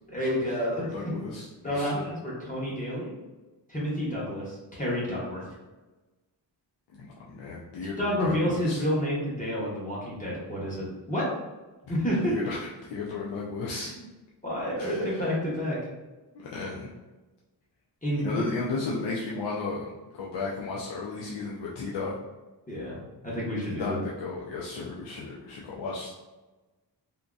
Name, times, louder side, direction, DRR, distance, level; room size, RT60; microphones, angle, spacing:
voice 1, 0.1-0.9 1.6-3.1 3.7-5.4 8.0-11.3 11.9-12.4 14.4-15.8 18.0-18.4 22.7-23.0 23.2-24.0, equal, 20° left, -7 dB, 0.8 m, -29 dB
voice 2, 0.8-2.1 6.9-8.8 12.2-13.9 14.8-15.3 16.3-16.9 18.2-19.9 20.2-22.2 23.6-26.1, left 3 dB, 85° left, -4 dB, 0.6 m, -34 dB
3.5 x 2.6 x 2.4 m, 1.2 s
wide cardioid pair, 165°, 42 cm